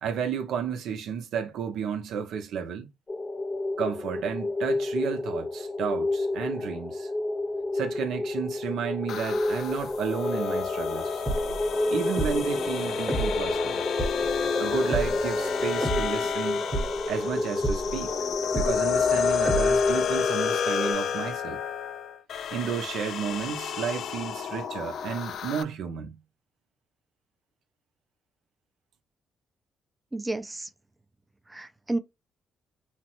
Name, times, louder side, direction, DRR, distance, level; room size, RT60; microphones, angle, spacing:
voice 1, 0.0-2.9 3.8-7.1 7.7-11.2 11.9-13.8 14.6-16.7 17.1-18.1 18.5-21.6 22.5-26.2, right 7 dB, 80° right, 0.6 m, -32 dB
sound 1, 3.1-20.9, left 2 dB, 25° left, 0.7 m, -30 dB
sound 2, 9.1-25.6, left 8 dB, 65° left, 0.3 m, -31 dB
sound 3, 11.2-20.2, right 2 dB, 30° right, 0.9 m, -34 dB
voice 2, 30.1-30.7 31.5-32.0, right 2 dB, 15° right, 0.4 m, -31 dB
3.2 x 2.0 x 3.0 m
cardioid pair, 90°, 0 cm